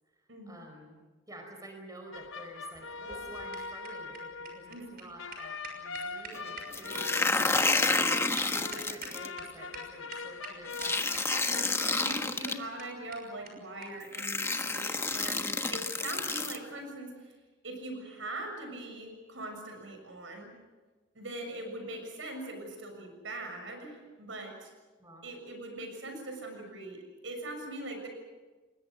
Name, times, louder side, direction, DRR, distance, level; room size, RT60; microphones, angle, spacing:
voice 1, 0.5-1.0 1.3-11.1 25.0-25.3, right 1 dB, 20° right, 3 dB, 4.6 m, -49 dB
sound 1, 2.1-12.3, left 4 dB, 75° left, 0.9 m, -42 dB
sound 2, 2.7-9.4 9.7-9.8 10.1-10.5 10.8-11.5 11.8-11.9 12.2-12.3 12.5-12.6 12.8-12.9 13.1-13.2 13.5-13.6 13.8-13.9 14.2-14.3 15.1-15.3, right 4 dB, 55° right, 6.2 m, -45 dB
sound 3, 6.7-9.3 10.7-12.5 13.6-13.7 14.1-16.6, left 3 dB, 15° left, 1.2 m, -29 dB
voice 2, 11.9-17.1 17.6-20.5 21.2-24.7 25.2-28.1, right 2 dB, 80° right, 4 dB, 6.9 m, -41 dB
30.0 x 21.0 x 6.5 m, 1.3 s
head